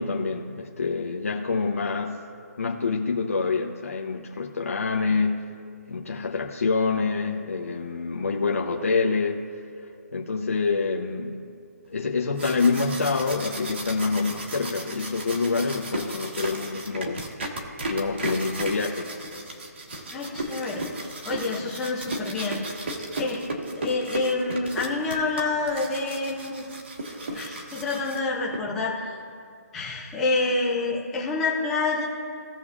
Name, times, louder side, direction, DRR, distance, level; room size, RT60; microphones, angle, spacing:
voice 1, 0.0-2.2 2.6-5.5 5.9-9.4 9.8-11.5 11.9-17.3 17.9-19.1, left 4 dB, 55° left, 0 dB, 0.9 m, -26 dB
sound 1, 12.1-28.6, right 2 dB, 40° right, 1.3 m, -35 dB
voice 2, 20.1-20.8 21.2-22.6 23.1-23.4 23.8-26.6 27.3-28.9 29.7-32.1, left 3 dB, 5° left, -4 dB, 0.4 m, -27 dB
17.0 x 6.6 x 2.4 m, 2.3 s
hypercardioid pair, 180°, 9 cm